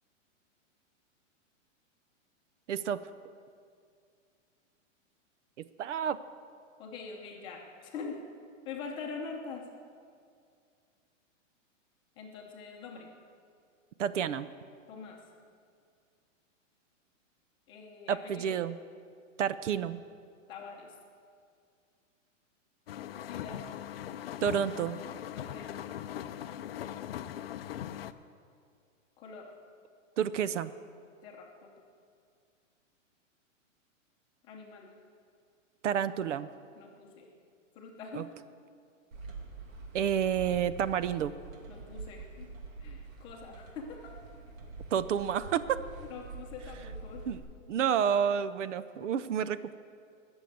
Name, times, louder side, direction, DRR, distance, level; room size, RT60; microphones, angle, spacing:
voice 1, 2.7-3.1 5.8-6.2 14.0-14.5 18.1-18.8 19.4-20.0 24.4-25.0 30.2-30.7 35.8-36.5 38.1-38.2 39.9-41.3 44.9-45.8 47.3-47.4 47.7-49.7, right 8 dB, 65° right, 15 dB, 0.7 m, -29 dB
voice 2, 6.8-8.2 8.6-9.6 12.2-13.1 14.9-15.2 17.7-18.6 20.5-20.9 23.3-23.6 25.3-25.9 29.2-29.5 31.2-31.7 34.4-34.9 36.8-37.3 37.7-38.3 41.7-42.5 42.8-44.2 46.1-47.2 49.0-49.2, left 5 dB, 10° left, 0 dB, 0.8 m, -44 dB
sound 1, 22.9-28.1, left 11 dB, 50° left, 0.5 m, -40 dB
sound 2, 39.1-47.4, right 3 dB, 85° right, 2.7 m, -45 dB
20.0 x 7.1 x 7.7 m, 2.2 s
supercardioid pair, 175°, 39 cm